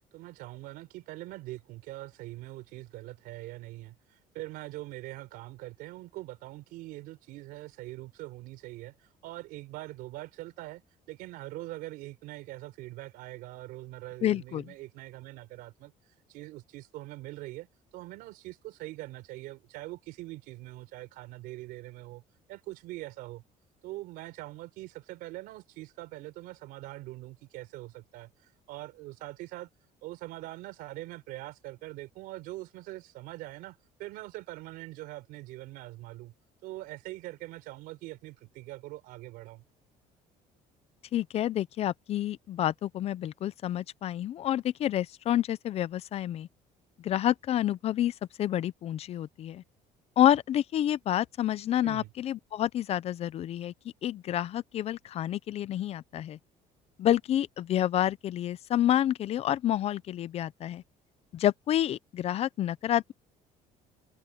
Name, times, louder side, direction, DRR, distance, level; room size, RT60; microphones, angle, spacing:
voice 1, 0.1-10.8 11.1-15.9 16.3-17.7 17.9-22.2 22.5-23.4 23.8-29.7 30.0-36.3 36.6-39.6 51.8-52.1, right 18 dB, 85° right, 4.1 m, -43 dB
voice 2, 14.2-14.7 41.1-46.5 47.0-48.1 48.4-49.6 50.2-53.7 54.0-56.4 57.0-60.8 61.3-63.1, left 11 dB, 45° left, 0.6 m, -28 dB
cardioid pair, 145°, 15 cm